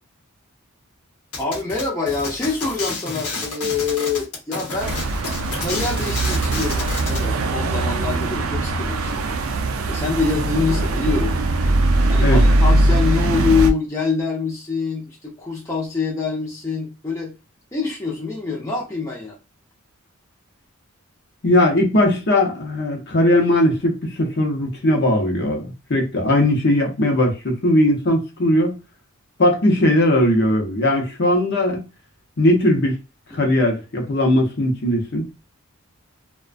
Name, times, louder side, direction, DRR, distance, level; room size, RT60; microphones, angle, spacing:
sound 1, 1.3-7.3, left 3 dB, 85° left, 0.8 m, -30 dB
voice 1, 1.4-5.2 5.6-11.4 12.1-17.3 17.7-19.4 33.3-33.4, left 4 dB, 15° left, 0.5 m, -25 dB
sound 2, 4.8-13.7, right 2 dB, 65° right, 0.4 m, -20 dB
voice 2, 21.4-28.8 29.4-31.8 32.4-33.0 33.3-35.2, left 1 dB, 50° left, 0.7 m, -19 dB
2.4 x 2.2 x 2.4 m
head